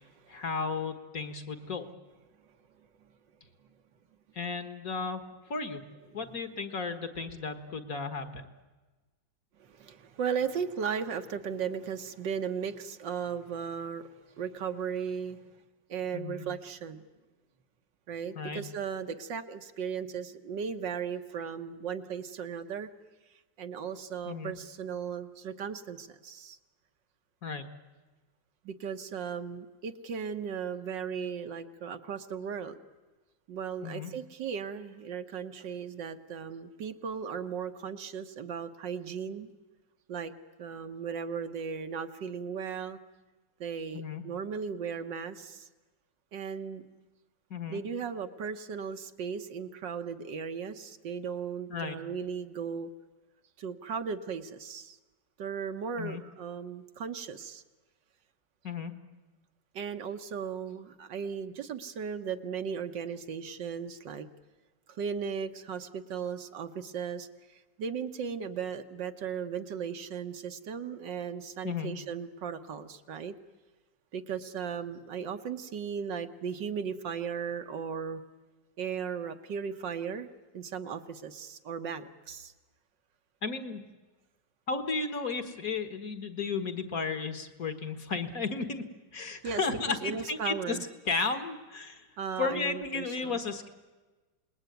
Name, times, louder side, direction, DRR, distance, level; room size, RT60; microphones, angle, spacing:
voice 1, 0.3-1.9 4.4-5.2 5.5-5.8 6.1-8.5 16.1-16.4 18.4-18.6 24.3-24.5 27.4-27.7 33.8-34.1 43.9-44.2 47.5-47.8 51.7-52.0 56.0-56.2 58.6-58.9 71.6-71.9 83.4-83.8 84.7-88.8 89.1-90.8 91.1-92.1 92.4-93.7, left 4 dB, 50° left, 8 dB, 2.0 m, -34 dB
voice 2, 9.6-14.1 14.4-15.4 15.9-17.1 18.1-22.9 23.6-26.6 28.7-32.8 33.5-39.5 40.1-40.3 40.6-43.0 43.6-45.7 46.3-46.9 47.7-52.9 53.6-55.0 55.4-57.6 59.7-64.3 64.9-73.3 74.1-78.2 78.8-80.3 80.5-82.5 89.4-90.9 92.2-93.4, right 6 dB, 70° right, 8 dB, 1.8 m, -36 dB
28.0 x 20.5 x 9.3 m, 1.2 s
omnidirectional pair, 2.0 m